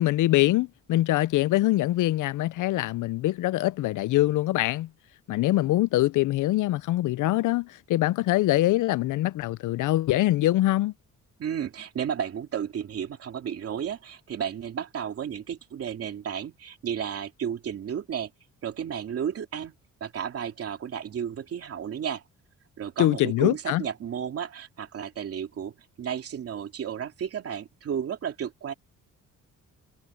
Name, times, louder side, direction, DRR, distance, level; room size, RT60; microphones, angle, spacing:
voice 1, 0.0-4.9 5.3-10.9 23.0-23.8, left 16 dB, 75° left, 0.5 m, -24 dB
voice 2, 11.4-18.3 18.6-19.7 20.0-22.2 22.8-28.7, right 8 dB, 50° right, 2.7 m, -33 dB
cardioid pair, 170°, 31 cm